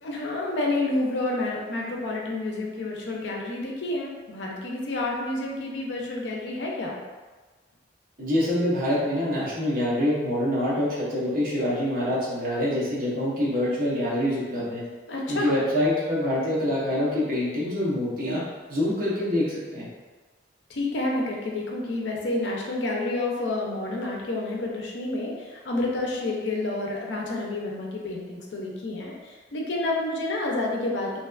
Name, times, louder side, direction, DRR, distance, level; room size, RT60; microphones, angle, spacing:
voice 1, 0.0-7.0 15.1-15.5 20.7-31.2, left 2 dB, 70° left, -1 dB, 0.5 m, -29 dB
voice 2, 8.2-14.8 15.3-18.4 18.7-19.9, left 1 dB, 50° right, -7 dB, 0.8 m, -25 dB
2.7 x 2.3 x 2.3 m, 1.3 s
head